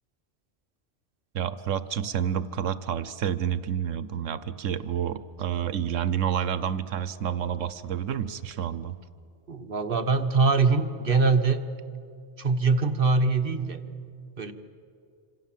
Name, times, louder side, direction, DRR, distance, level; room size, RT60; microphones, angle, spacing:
voice 1, 1.3-8.9, right 9 dB, 85° right, 14 dB, 1.2 m, -29 dB
voice 2, 9.5-11.6 12.4-13.8 14.4-14.5, right 4 dB, 50° right, 7 dB, 1.4 m, -23 dB
26.5 x 26.5 x 7.5 m, 2.4 s
omnidirectional pair, 1.3 m